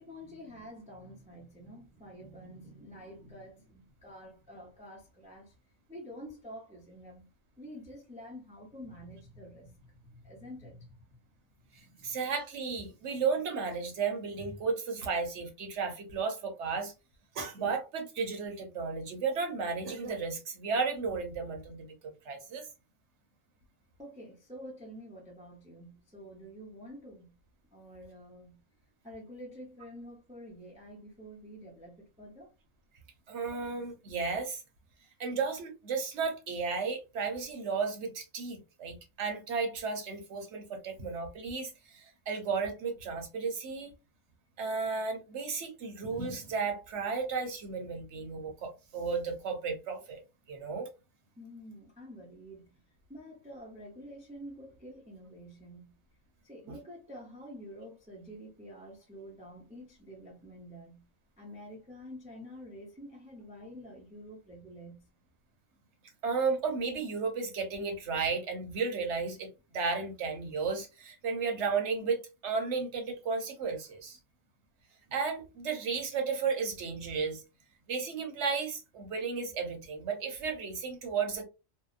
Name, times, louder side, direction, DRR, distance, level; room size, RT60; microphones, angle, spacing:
voice 1, 0.0-5.5 5.9-7.3 7.6-11.2 11.7-12.2 24.0-27.3 27.7-28.6 29.0-32.5 51.4-52.8 53.1-56.0 56.4-61.1 61.4-65.1, equal, 10° right, 0.4 m, -48 dB
voice 2, 12.0-16.9 17.3-21.9 22.2-22.7 33.3-34.6 35.2-43.9 44.6-50.2 50.5-50.9 66.2-74.2 75.1-77.4 77.9-81.4, right 5 dB, 65° right, 1.0 m, -34 dB
2.7 x 2.0 x 2.3 m
omnidirectional pair, 1.4 m